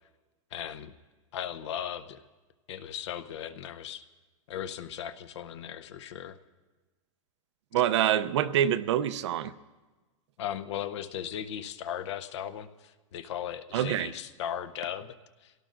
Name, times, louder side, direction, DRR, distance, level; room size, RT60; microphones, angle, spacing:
voice 1, 0.5-0.9 1.3-2.2 2.7-4.0 4.5-6.4 10.4-15.5, left 9 dB, 55° left, 12 dB, 0.7 m, -37 dB
voice 2, 7.7-9.5 13.7-14.1, right 11 dB, 60° right, 12 dB, 0.6 m, -26 dB
25.0 x 17.5 x 2.5 m, 1.2 s
supercardioid pair, 170°, 17 cm